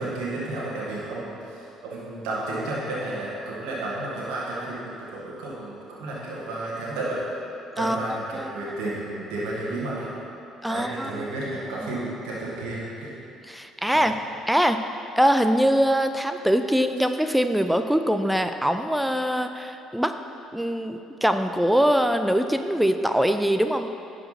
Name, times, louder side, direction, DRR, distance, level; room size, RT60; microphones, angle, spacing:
voice 1, 0.0-7.2 7.8-10.1 10.7-13.2 13.9-14.1, right 2 dB, 70° right, -6 dB, 1.9 m, -32 dB
voice 2, 7.8-8.5 10.6-11.2 13.5-14.2 14.5-14.8 15.2-20.1 20.5-23.9, equal, 5° right, 8 dB, 0.5 m, -23 dB
10.5 x 5.0 x 5.8 m, 2.7 s
hypercardioid pair, 55°, 0 cm